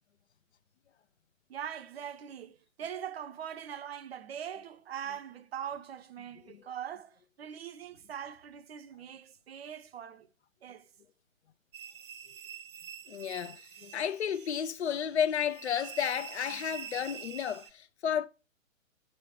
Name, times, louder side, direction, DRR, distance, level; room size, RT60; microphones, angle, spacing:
voice 1, 1.5-10.3 10.6-10.9, right 9 dB, 50° right, 0.9 m, -42 dB
sound 1, 11.7-17.7, right 9 dB, 20° right, 0.7 m, -46 dB
voice 2, 13.1-18.3, left 8 dB, 55° left, 0.8 m, -32 dB
6.7 x 6.4 x 6.5 m
figure-of-eight pair, 130°, 40 cm